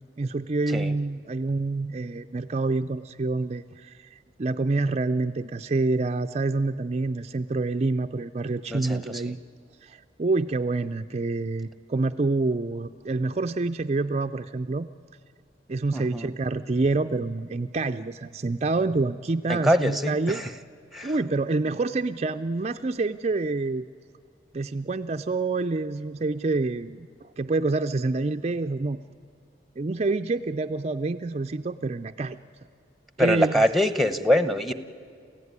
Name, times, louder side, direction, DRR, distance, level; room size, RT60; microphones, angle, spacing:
voice 1, 0.2-9.4 9.8-14.9 15.7-20.4 21.0-23.9 24.5-27.1 27.4-29.0 29.8-32.4 33.2-33.6, right 3 dB, 35° right, 7 dB, 0.5 m, -27 dB
voice 2, 8.7-9.3 15.9-16.3 19.5-20.5 20.9-21.1 33.2-34.7, equal, ahead, 12 dB, 1.0 m, -24 dB
28.0 x 15.5 x 9.6 m, 2.3 s
head